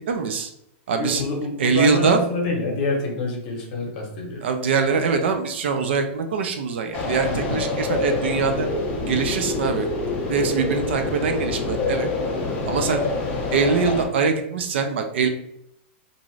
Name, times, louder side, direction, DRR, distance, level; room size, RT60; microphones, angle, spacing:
voice 1, 0.1-0.5 0.9-1.2 1.6-2.2 4.4-8.7 9.0-9.9 10.3-12.1 12.7-13.0 13.5-15.3, right 5 dB, 65° right, 5 dB, 0.4 m, -23 dB
voice 2, 1.0-4.5 7.3-7.6, left 2 dB, 40° left, 0 dB, 0.8 m, -27 dB
sound 1, 6.9-14.0, left 2 dB, 20° left, 0.5 m, -26 dB
2.6 x 2.4 x 3.1 m, 0.77 s
supercardioid pair, 175°, 7 cm